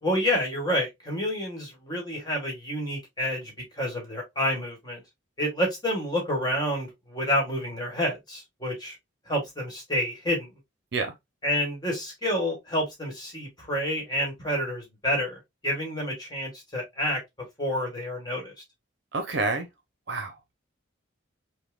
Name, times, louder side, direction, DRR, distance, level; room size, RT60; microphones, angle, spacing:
voice 1, 0.0-5.0 5.4-8.9 9.3-10.5 11.4-17.2 17.6-18.5, equal, 20° left, 1.4 m, -29 dB
voice 2, 19.1-19.7 20.1-20.5, right 3 dB, 55° right, 0.7 m, -28 dB
5.5 x 2.2 x 2.3 m
head